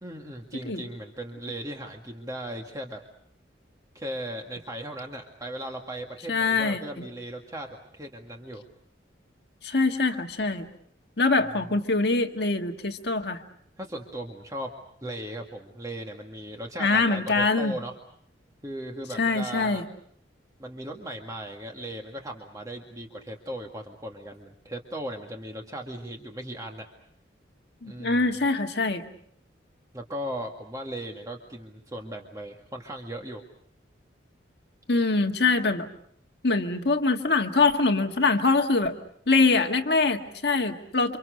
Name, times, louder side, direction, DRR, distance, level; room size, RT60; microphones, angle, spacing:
voice 1, 0.0-3.0 3.9-8.7 11.6-11.7 13.8-14.7 15.0-17.9 18.6-19.8 20.6-26.9 27.8-28.2 29.9-33.4, right 1 dB, 20° right, 1 dB, 2.0 m, -37 dB
voice 2, 6.3-6.8 9.6-10.7 11.2-13.4 16.8-17.7 19.2-19.8 27.8-29.0 34.9-35.9 36.4-38.9 39.3-41.2, left 3 dB, 60° left, 5 dB, 1.6 m, -23 dB
29.0 x 26.0 x 6.5 m, 0.66 s
head